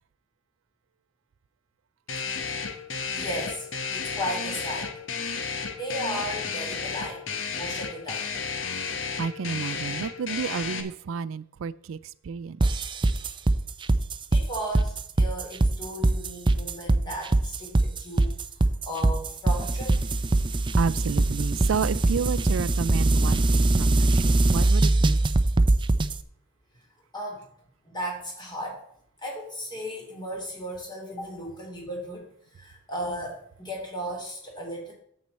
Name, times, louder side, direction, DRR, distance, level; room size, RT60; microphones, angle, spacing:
sound 1, 2.1-10.8, left 5 dB, 65° left, 1.2 m, -32 dB
voice 1, 2.9-3.7 3.9-5.0 5.4-7.2 7.5-8.3 14.3-20.0 27.1-27.5 27.8-28.8 29.2-34.9, equal, 20° left, -1 dB, 3.5 m, -35 dB
voice 2, 9.2-12.0 12.2-12.6 20.7-25.2, right 6 dB, 80° right, 17 dB, 0.4 m, -31 dB
sound 2, 12.6-26.2, right 2 dB, 25° right, 0.5 m, -22 dB
9.1 x 7.5 x 4.3 m, 0.68 s
head